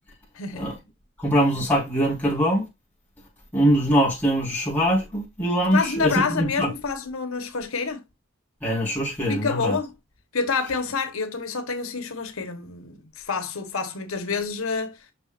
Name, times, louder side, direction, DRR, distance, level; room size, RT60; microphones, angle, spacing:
voice 1, 0.3-0.8 5.7-8.0 9.3-9.9 10.3-15.1, left 4 dB, 85° left, 1.4 m, -28 dB
voice 2, 1.2-2.6 3.5-6.7 8.6-9.8, equal, 10° left, 4.7 m, -22 dB
7.3 x 6.0 x 2.6 m
head